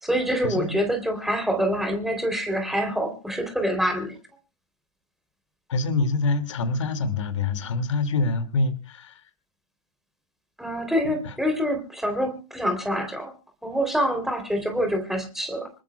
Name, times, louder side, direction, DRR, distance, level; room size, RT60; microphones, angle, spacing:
voice 1, 0.0-4.2 10.6-13.3 13.6-15.7, equal, ahead, 6 dB, 3.5 m, -26 dB
voice 2, 5.7-9.2 11.2-11.3, left 3 dB, 60° left, 10 dB, 2.4 m, -25 dB
26.5 x 14.0 x 2.3 m, 0.33 s
figure-of-eight pair, 105°, 18 cm